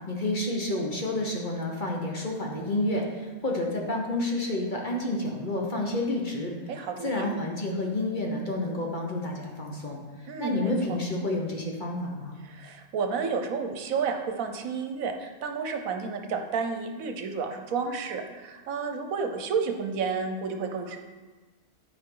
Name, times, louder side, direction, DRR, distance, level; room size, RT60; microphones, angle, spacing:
voice 1, 0.1-6.5 7.0-10.0 10.4-12.4, left 1 dB, 35° left, 0 dB, 1.1 m, -29 dB
voice 2, 6.7-7.3 10.3-10.7 12.4-21.0, right 5 dB, 75° right, 5 dB, 1.2 m, -31 dB
11.5 x 4.9 x 3.8 m, 1.3 s
omnidirectional pair, 1.5 m